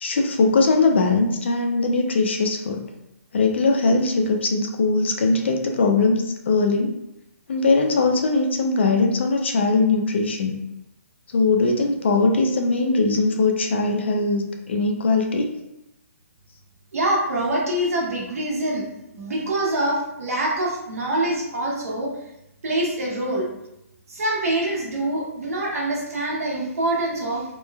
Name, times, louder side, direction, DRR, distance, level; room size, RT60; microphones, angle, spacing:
voice 1, 0.0-2.9 3.3-7.0 7.5-10.6 11.3-15.5, left 3 dB, 45° left, 3 dB, 0.3 m, -20 dB
voice 2, 16.9-18.8 19.1-22.1 22.6-23.5 24.1-27.4, right 1 dB, 70° right, -3 dB, 0.9 m, -25 dB
2.9 x 2.1 x 2.2 m, 0.86 s
hypercardioid pair, 175°, 8 cm